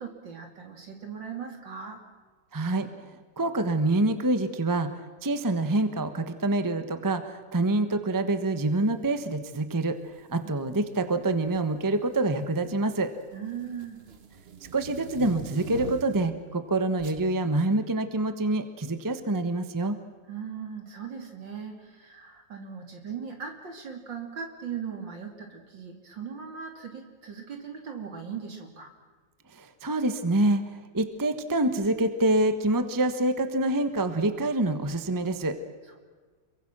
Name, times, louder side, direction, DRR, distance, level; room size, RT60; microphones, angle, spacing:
voice 1, 0.0-2.0 13.3-14.1 20.3-28.9, right 7 dB, 65° right, 3 dB, 3.6 m, -39 dB
voice 2, 2.5-3.1 3.4-13.1 14.7-20.0 29.5-35.6, right 2 dB, 15° right, 9 dB, 1.0 m, -26 dB
sound 1, 10.1-10.4 11.3-11.8 12.1-16.4 17.0-17.2, right 6 dB, 45° right, 0.8 m, -42 dB
28.0 x 22.5 x 6.2 m, 1.4 s
omnidirectional pair, 2.1 m